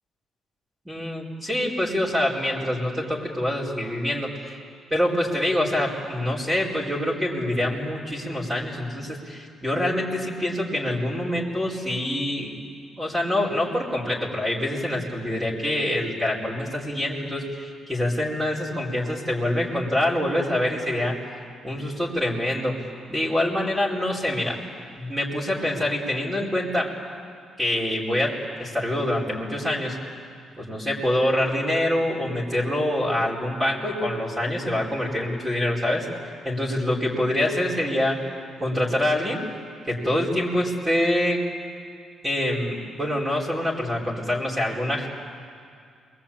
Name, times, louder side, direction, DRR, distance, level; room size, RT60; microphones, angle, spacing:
voice 1, 0.8-4.6 4.9-12.5 13.0-21.2 21.6-22.8 23.1-24.6 25.0-26.9 27.6-30.0 30.6-36.0 36.4-38.3 38.6-39.4 39.9-41.4 42.2-45.1, left 1 dB, 15° right, -5 dB, 4.9 m, -25 dB
28.5 x 22.0 x 8.8 m, 2.3 s
cardioid pair, 90°, 0 cm